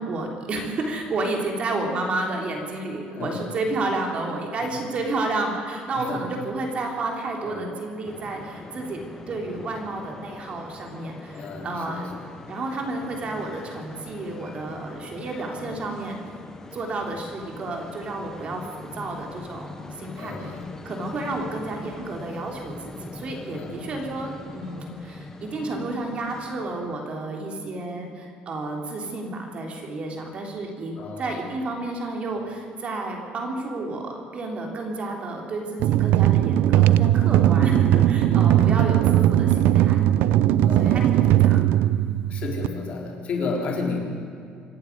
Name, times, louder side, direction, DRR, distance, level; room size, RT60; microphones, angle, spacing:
voice 1, 0.0-12.1 12.5-16.2 16.7-20.5 20.9-40.0 40.4-41.9, right 2 dB, 35° right, 2 dB, 3.6 m, -31 dB
voice 2, 3.1-3.5 4.6-4.7 5.9-6.3 7.4-7.7 11.3-12.3 20.2-20.7 23.5-24.0 31.0-31.4 37.7-38.0 38.3-38.8 40.6-41.1 42.3-44.0, left 4 dB, 40° left, 0 dB, 3.9 m, -33 dB
sound 1, 8.0-26.9, left 3 dB, 15° left, 1.2 m, -42 dB
sound 2, 35.8-42.7, right 12 dB, 70° right, 0.5 m, -19 dB
26.0 x 11.5 x 9.6 m, 2.4 s
cardioid pair, 150°, 3 cm